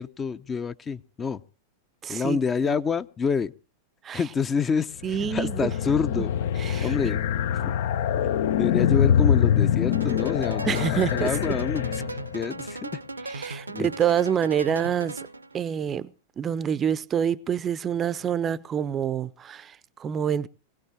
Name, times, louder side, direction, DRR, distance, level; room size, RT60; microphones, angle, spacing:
voice 1, 0.0-1.4 2.1-3.5 4.1-6.3 6.8-7.2 7.5-7.7 8.6-12.0 12.3-13.0 13.7-13.9, left 5 dB, 20° left, 0.7 m, -28 dB
voice 2, 2.0-2.4 2.6-2.8 4.0-4.2 5.0-5.7 6.6-6.9 10.6-11.6 13.3-15.2 15.5-20.5, right 8 dB, 25° right, 0.6 m, -27 dB
sound 1, 5.0-12.4, left 9 dB, 55° left, 0.7 m, -24 dB
sound 2, 9.9-15.6, right 2 dB, 80° right, 0.9 m, -37 dB
22.0 x 17.0 x 2.8 m
figure-of-eight pair, 90°, 0 cm